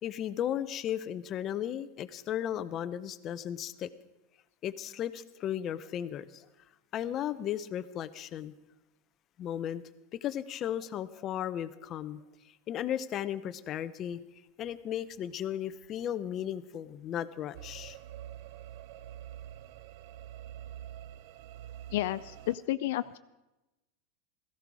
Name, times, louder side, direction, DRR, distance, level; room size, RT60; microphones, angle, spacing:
voice 1, 0.0-3.9 4.6-6.4 6.9-8.5 9.4-9.8 10.1-12.2 12.7-14.2 14.6-18.0, left 10 dB, 35° left, 13 dB, 0.7 m, -35 dB
sound 1, 17.5-22.6, right 11 dB, 65° right, 0.5 m, -46 dB
voice 2, 21.9-23.2, left 15 dB, 70° left, 12 dB, 0.4 m, -31 dB
17.0 x 15.0 x 4.8 m, 1.0 s
supercardioid pair, 140°, 0 cm